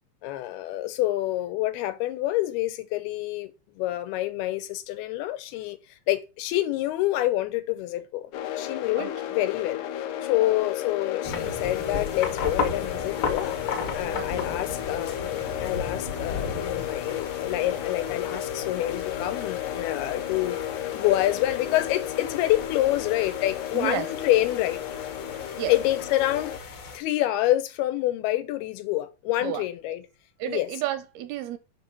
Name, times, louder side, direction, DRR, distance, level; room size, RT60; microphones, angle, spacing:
voice 1, 0.2-5.8 6.1-8.3 8.6-9.8 10.2-13.6 13.9-20.6 20.9-24.8 25.7-30.0 30.5-30.7, left 15 dB, 90° left, 2.7 m, -27 dB
sound 1, 8.3-26.6, left 11 dB, 70° left, 2.0 m, -33 dB
sound 2, 11.2-27.0, left 4 dB, 50° left, 1.6 m, -36 dB
voice 2, 14.1-14.6 23.7-24.1 25.6-25.7 29.4-30.0 30.4-31.6, right 12 dB, 80° right, 2.7 m, -32 dB
7.2 x 5.7 x 5.9 m
omnidirectional pair, 4.5 m